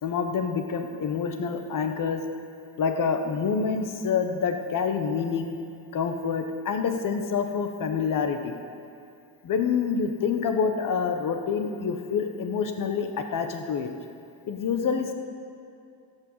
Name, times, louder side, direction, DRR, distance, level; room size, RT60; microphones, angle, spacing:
voice 1, 0.0-2.2 2.8-5.6 5.9-8.5 9.4-13.9 14.5-15.1, left 6 dB, 45° left, 6 dB, 1.1 m, -27 dB
16.0 x 5.5 x 7.3 m, 2.5 s
cardioid pair, 140°, 44 cm